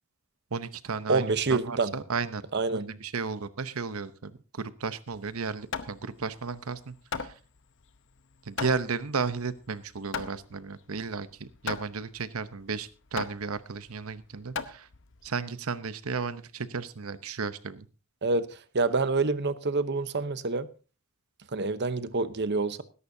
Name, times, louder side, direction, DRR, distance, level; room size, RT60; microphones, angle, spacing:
voice 1, 0.5-2.4 2.7-7.3 8.4-14.9 15.2-17.9, right 5 dB, 80° right, 0.9 m, -34 dB
voice 2, 1.1-1.9 2.5-2.9 18.2-20.7 21.5-22.8, right 3 dB, 55° right, 0.9 m, -27 dB
Hammer, 5.1-15.3, left 5 dB, 60° left, 0.9 m, -39 dB
20.5 x 11.0 x 2.7 m
head